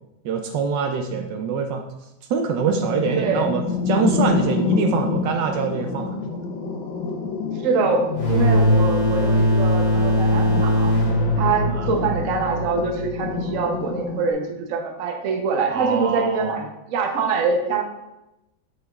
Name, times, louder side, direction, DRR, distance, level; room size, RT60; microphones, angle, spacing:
voice 1, 0.2-1.8 2.3-6.4 11.7-11.9 15.7-16.5, right 6 dB, 75° right, 5 dB, 1.2 m, -24 dB
sound 1, 2.6-14.3, left 4 dB, 85° left, 1.6 m, -28 dB
voice 2, 3.2-3.5 7.6-10.9 11.4-17.8, right 4 dB, 55° right, 4 dB, 0.9 m, -24 dB
sound 2, 8.1-13.6, left 1 dB, 60° left, 2.4 m, -20 dB
6.7 x 6.4 x 2.3 m, 0.93 s
omnidirectional pair, 2.1 m